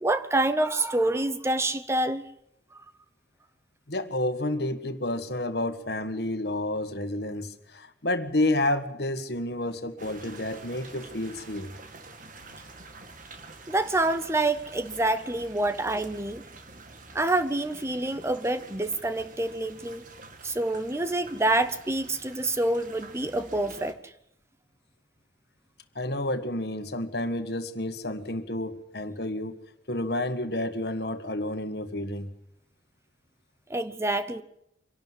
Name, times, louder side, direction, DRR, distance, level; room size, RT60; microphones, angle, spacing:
voice 1, 0.0-2.2 2.7-2.8 13.7-16.4 17.1-20.0 20.4-24.1 33.7-34.4, right 2 dB, 15° right, 0.7 m, -27 dB
voice 2, 3.9-11.7 25.9-29.6 29.9-32.3, left 1 dB, 60° left, 1.7 m, -30 dB
sound 1, 10.0-23.9, right 3 dB, 45° right, 1.9 m, -47 dB
25.0 x 12.0 x 9.6 m
head